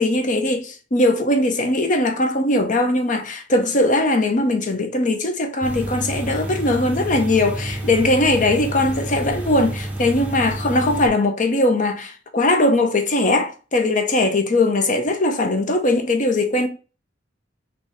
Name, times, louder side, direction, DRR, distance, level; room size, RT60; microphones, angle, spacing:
voice 1, 0.0-16.7, left 2 dB, 40° left, 0.7 m, -20 dB
sound 1, 5.6-11.1, right 1 dB, 10° right, 0.7 m, -29 dB
3.5 x 2.7 x 4.0 m
head